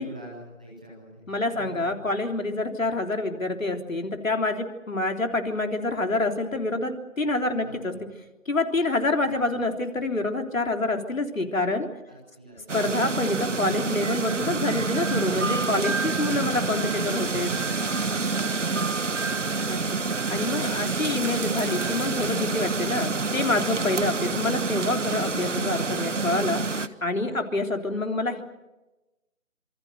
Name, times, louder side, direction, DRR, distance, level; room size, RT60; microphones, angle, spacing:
voice 1, 0.0-1.2 1.5-2.1 7.6-7.8 9.2-9.4 12.1-12.6 16.2-16.6 18.5-19.7, right 1 dB, 5° right, -5 dB, 1.1 m, -45 dB
voice 2, 1.3-7.9 8.5-11.9 12.7-17.6 19.7-19.8 20.3-26.6 27.0-28.4, left 2 dB, 70° left, 4 dB, 3.6 m, -27 dB
sound 1, 12.7-26.9, right 4 dB, 60° right, 1.4 m, -27 dB
26.5 x 24.0 x 6.6 m, 1.0 s
figure-of-eight pair, 165°, 41 cm